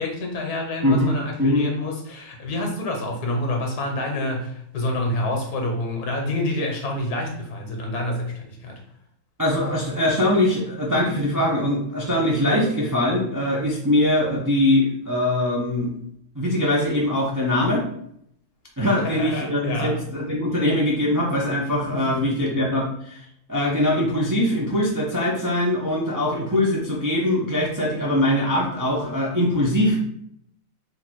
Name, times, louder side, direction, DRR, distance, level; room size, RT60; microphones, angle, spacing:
voice 1, 0.0-8.8 18.9-20.0 21.9-22.7, left 1 dB, 90° left, 2 dB, 1.5 m, -28 dB
voice 2, 9.4-15.9 16.3-17.8 18.8-23.2 23.5-30.0, left 1 dB, 30° right, -3 dB, 0.3 m, -22 dB
3.7 x 2.6 x 4.5 m, 0.70 s
omnidirectional pair, 1.6 m